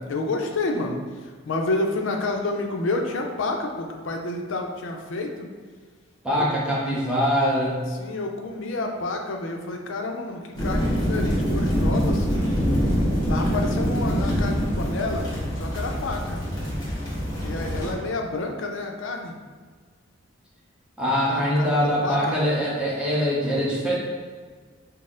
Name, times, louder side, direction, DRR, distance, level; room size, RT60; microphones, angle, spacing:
voice 1, 0.1-5.5 6.3-6.5 7.9-12.5 13.3-15.3 15.6-16.4 17.4-19.3 21.3-22.4, left 2 dB, 65° left, 3 dB, 0.5 m, -29 dB
voice 2, 6.2-7.8 21.0-24.0, equal, 5° right, -6 dB, 0.8 m, -23 dB
sound 1, 10.6-17.9, equal, 20° left, 1.2 m, -24 dB
4.0 x 2.0 x 3.8 m, 1.5 s
head